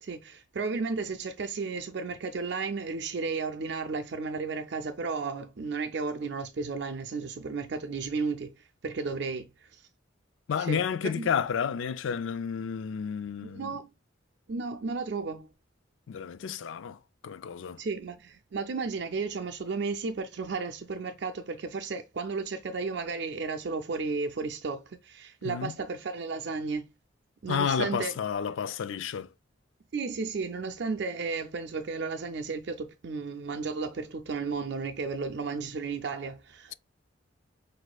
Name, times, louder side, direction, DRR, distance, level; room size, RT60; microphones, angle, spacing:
voice 1, 0.0-8.5 8.8-9.9 10.6-11.3 13.4-13.9 14.5-15.5 17.8-26.9 27.4-28.1 29.9-36.7, right 4 dB, 60° right, 0.5 m, -33 dB
voice 2, 10.5-13.8 16.1-17.0 17.2-17.8 25.4-25.7 27.5-29.3, left 7 dB, 80° left, 0.4 m, -31 dB
6.1 x 2.6 x 2.3 m
head